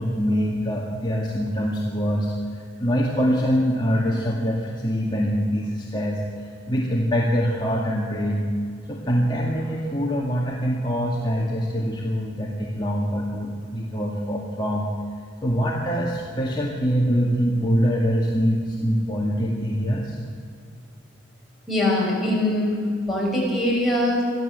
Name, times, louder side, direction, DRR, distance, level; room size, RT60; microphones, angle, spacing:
voice 1, 0.0-8.5 8.9-14.9 15.4-20.2, equal, 25° left, -3 dB, 2.1 m, -24 dB
voice 2, 21.7-22.8 23.1-24.2, left 1 dB, ahead, -4 dB, 6.9 m, -22 dB
23.0 x 14.0 x 8.1 m, 2.3 s
head